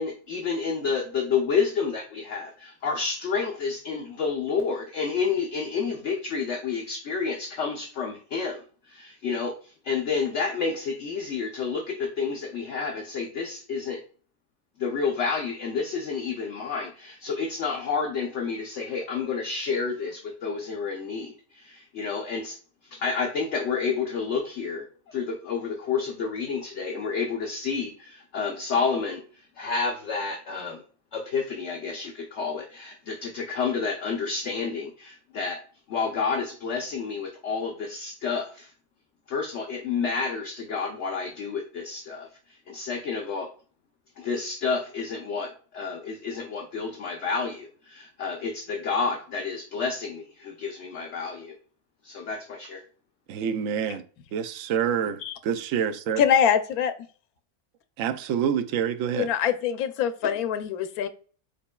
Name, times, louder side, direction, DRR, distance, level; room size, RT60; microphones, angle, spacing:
voice 1, 0.0-8.6 8.9-14.0 14.8-22.6 22.8-30.8 31.1-35.6 35.9-38.7 39.3-43.5 44.2-51.5 52.0-52.8, left 5 dB, 60° left, 0.9 m, -30 dB
voice 2, 53.3-54.0 54.3-56.2 58.0-59.3, right 8 dB, 70° right, 0.9 m, -27 dB
voice 3, 56.2-56.9 59.2-59.5 60.0-61.1, left 8 dB, 85° left, 1.1 m, -23 dB
5.1 x 4.3 x 2.3 m
omnidirectional pair, 1.5 m